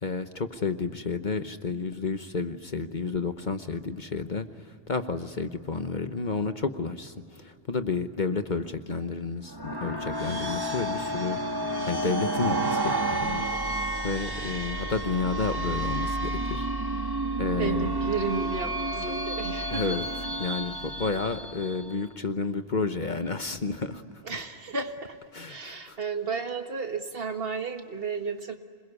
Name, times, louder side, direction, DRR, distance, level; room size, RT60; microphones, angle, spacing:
voice 1, 0.0-11.4 11.8-16.7 17.0-17.1 17.4-18.0 19.7-20.0 20.4-24.2 25.3-26.0, left 4 dB, 45° left, 9 dB, 1.1 m, -31 dB
sound 1, 9.5-22.0, right 2 dB, 20° right, 1.4 m, -31 dB
sound 2, 13.2-21.9, equal, 70° left, 6.5 m, -38 dB
voice 2, 17.5-20.0 24.2-25.2 25.5-28.5, right 4 dB, 55° right, 6 dB, 1.8 m, -33 dB
27.0 x 21.5 x 9.7 m, 2.3 s
omnidirectional pair, 1.2 m